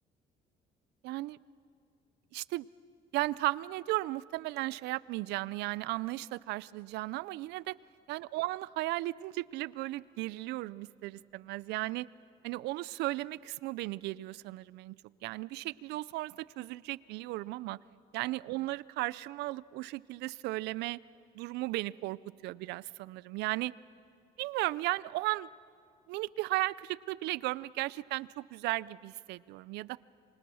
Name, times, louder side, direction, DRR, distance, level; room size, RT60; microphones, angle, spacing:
voice 1, 1.0-1.4 2.3-2.7 3.1-7.8 8.1-12.1 12.4-15.0 15.2-17.8 18.1-21.0 21.3-23.7 24.4-25.5 26.1-30.0, right 19 dB, 85° right, 20 dB, 0.5 m, -35 dB
26.0 x 23.5 x 6.3 m, 2.3 s
cardioid pair, 110°, 17 cm